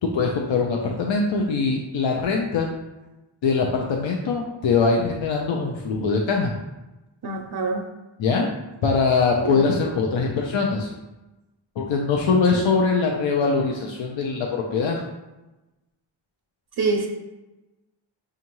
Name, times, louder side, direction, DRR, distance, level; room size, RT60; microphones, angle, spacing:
voice 1, 0.0-2.7 3.4-6.5 8.2-8.5 8.8-10.9 11.8-15.0, left 4 dB, 70° left, 0 dB, 0.5 m, -22 dB
voice 2, 7.2-7.8 16.8-17.1, right 3 dB, 55° right, 2 dB, 0.5 m, -24 dB
5.4 x 2.5 x 2.9 m, 1.0 s
wide cardioid pair, 115°, 47 cm